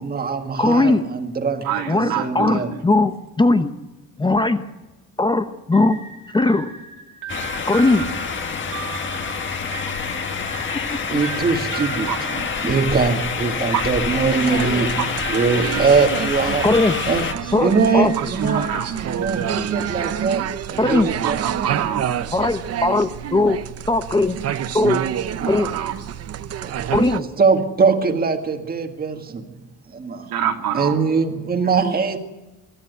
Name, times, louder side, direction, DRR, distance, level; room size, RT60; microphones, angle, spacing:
voice 1, 0.0-2.7 11.1-12.1 12.6-16.7 17.1-17.3 17.6-18.7 19.0-21.4 26.6-26.9 27.2-29.5 29.9-30.3 30.7-32.2, right 5 dB, 25° right, 1.7 m, -22 dB
voice 2, 0.6-1.1 1.9-3.7 4.2-4.6 5.2-6.0 6.3-6.7 7.7-8.1 10.7-11.2 16.6-17.0 17.5-18.1 20.8-21.1 22.3-23.6 23.9-24.4 24.7-25.0 25.4-25.7 26.9-27.2, left 2 dB, 15° left, 0.8 m, -19 dB
voice 3, 1.6-2.8 9.9-10.5 12.1-12.5 13.7-13.8 15.0-15.1 18.2-19.0 20.8-22.1 25.6-25.9 30.3-31.0, right 9 dB, 90° right, 3.3 m, -27 dB
sound 1, 5.7-13.1 13.7-21.0, right 8 dB, 60° right, 2.3 m, -37 dB
sound 2, 7.3-17.3, left 5 dB, 35° left, 1.7 m, -27 dB
sound 3, 14.1-27.2, right 9 dB, 45° right, 0.8 m, -28 dB
23.5 x 13.5 x 9.3 m
cardioid pair, 165°, 34 cm